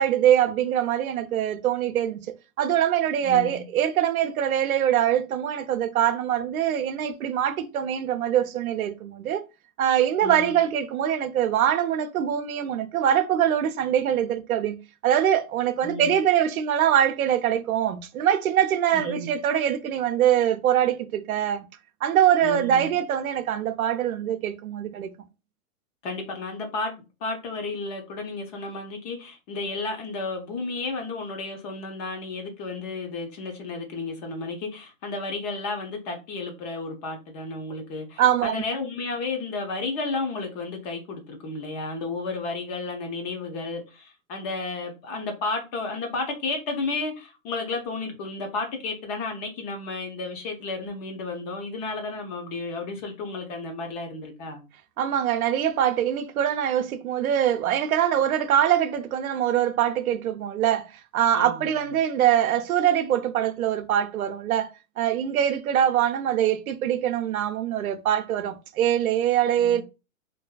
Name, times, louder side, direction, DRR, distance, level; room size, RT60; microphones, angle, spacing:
voice 1, 0.0-2.3 2.6-9.4 9.8-14.8 15.0-21.6 22.0-25.1 38.2-38.6 55.0-64.7 65.0-69.8, right 10 dB, 90° right, 0.6 m, -23 dB
voice 2, 3.2-3.6 10.2-10.5 15.8-16.2 18.9-19.3 22.4-22.9 26.0-54.6 61.3-61.8 69.6-69.8, left 3 dB, 30° left, 0.6 m, -32 dB
2.6 x 2.4 x 2.3 m
hypercardioid pair, 145°, 41 cm